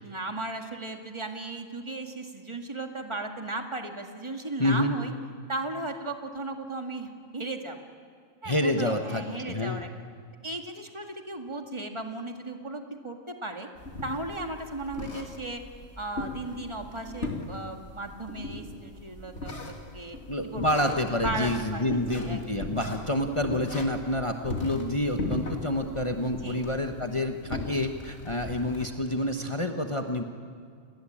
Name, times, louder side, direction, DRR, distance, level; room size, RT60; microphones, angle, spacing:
voice 1, 0.0-5.1 5.5-7.8 8.4-9.9 10.4-13.7 14.0-15.6 16.0-20.2 20.4-20.7 21.2-22.4 26.4-26.6, right 2 dB, 20° right, 4 dB, 2.1 m, -36 dB
voice 2, 4.6-4.9 8.4-9.8 20.3-30.2, left 1 dB, 25° left, 4 dB, 1.2 m, -28 dB
sound 1, 13.8-28.8, left 2 dB, 60° left, 3.0 m, -38 dB
29.0 x 20.0 x 8.7 m, 2.2 s
omnidirectional pair, 1.3 m